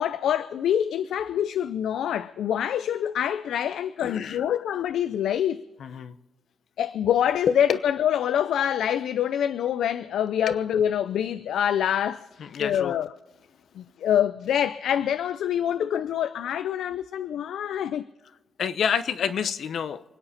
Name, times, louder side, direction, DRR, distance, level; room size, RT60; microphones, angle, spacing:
voice 1, 0.0-5.6 6.8-12.3 12.6-13.1 13.8-18.0, left 9 dB, 80° left, 0.5 m, -25 dB
voice 2, 4.0-4.4 5.8-6.2 7.5-7.6 10.5-10.6 12.4-13.0 18.6-20.0, left 7 dB, 55° left, 0.8 m, -28 dB
28.0 x 9.8 x 4.2 m
wide cardioid pair, 170°, 0 cm